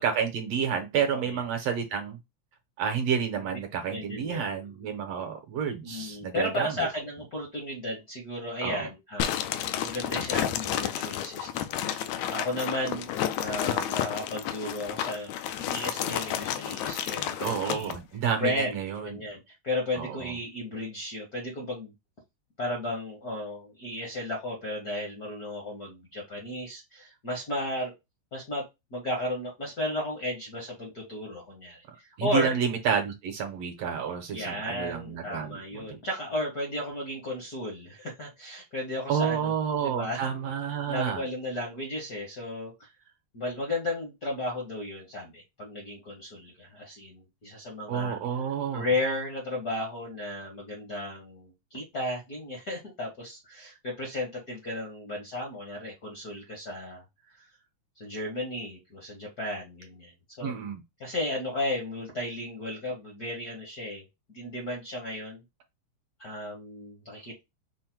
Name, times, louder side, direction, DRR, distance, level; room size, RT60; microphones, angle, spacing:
voice 1, 0.0-2.2 2.8-6.9 8.6-8.9 17.4-19.2 20.0-20.3 32.2-36.0 39.1-41.2 47.9-48.9 60.4-60.8, right 7 dB, 70° right, 1.7 m, -30 dB
voice 2, 3.9-4.5 5.8-13.1 13.4-17.9 18.4-21.9 22.6-27.9 28.3-28.6 28.9-32.6 34.3-39.5 39.8-40.3 40.9-42.9 43.3-48.2 48.7-57.0 57.4-57.5 58.0-60.1 60.4-60.5 61.0-64.0 64.3-65.4 66.2-67.4, left 1 dB, 50° left, 1.1 m, -34 dB
sound 1, 9.2-18.0, left 10 dB, 80° left, 1.8 m, -31 dB
5.6 x 2.1 x 4.4 m
omnidirectional pair, 3.3 m